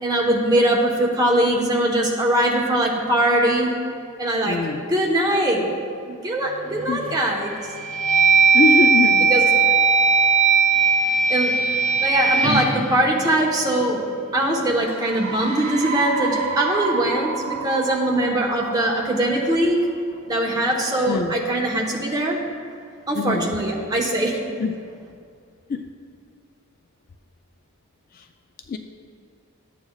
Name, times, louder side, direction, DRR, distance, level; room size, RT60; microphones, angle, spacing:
voice 1, 0.0-3.7 4.2-4.6 4.9-5.7 6.1-7.5 9.3-9.5 10.7-10.8 11.3-11.5 12.0-14.0 14.3-19.8 20.3-22.4 23.1-24.3, right 1 dB, 20° right, -2 dB, 1.1 m, -21 dB
voice 2, 4.4-4.8 6.9-7.0 8.5-9.3 21.1-21.3 23.1-23.5 24.6-24.7 25.7-25.8 28.7-28.8, left 4 dB, 40° left, 6 dB, 0.3 m, -23 dB
sound 1, 6.7-7.2 7.7-13.8, right 5 dB, 5° left, 1.0 m, -18 dB
sound 2, 14.9-19.4, right 5 dB, 70° right, 1.3 m, -30 dB
12.5 x 8.7 x 2.3 m, 2.2 s
head